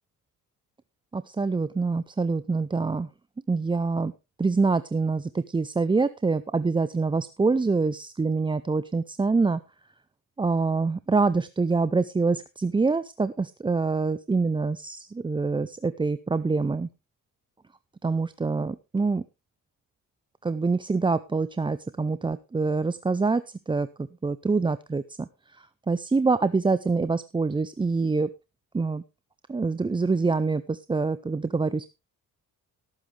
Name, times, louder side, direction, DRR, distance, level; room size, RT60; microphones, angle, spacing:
voice 1, 1.1-3.1 3.5-4.1 4.4-9.6 10.4-16.9 18.0-19.2 20.4-25.3 25.6-28.3 28.7-29.0 29.5-31.9, right 4 dB, 15° right, 14 dB, 0.5 m, -25 dB
17.5 x 9.0 x 3.3 m, 0.27 s
cardioid pair, 90°, 35 cm